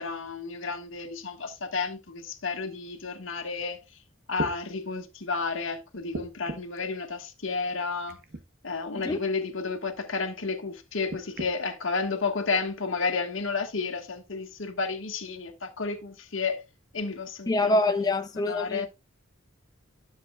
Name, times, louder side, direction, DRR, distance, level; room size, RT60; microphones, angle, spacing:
voice 1, 0.0-3.8 4.3-8.2 8.6-16.6 16.9-17.8 18.5-18.9, left 4 dB, 70° left, 1.6 m, -31 dB
sound 1, 3.8-3.9 4.3-4.6 6.1-6.8 8.1-8.4 9.0-9.2 11.1-11.5 12.4-12.5, right 2 dB, 55° right, 1.1 m, -37 dB
voice 2, 17.5-18.9, left 2 dB, 20° left, 0.4 m, -25 dB
12.0 x 7.2 x 2.4 m
head